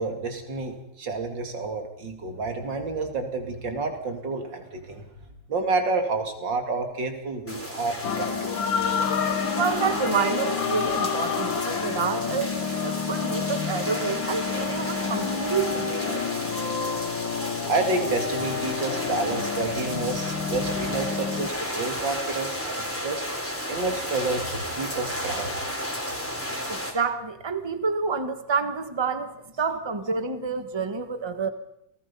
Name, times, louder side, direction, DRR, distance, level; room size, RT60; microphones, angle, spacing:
voice 1, 0.0-5.1 5.5-8.6 17.7-23.2 23.7-25.6, right 3 dB, 70° right, 5 dB, 3.3 m, -29 dB
sound 1, 7.5-26.9, equal, 5° left, 3.7 m, -33 dB
sound 2, 8.0-21.5, left 7 dB, 85° left, 2.0 m, -29 dB
voice 2, 9.6-12.5 12.8-16.3 26.7-31.5, right 5 dB, 15° right, 10 dB, 1.2 m, -28 dB
28.5 x 19.0 x 5.4 m, 0.80 s
omnidirectional pair, 2.1 m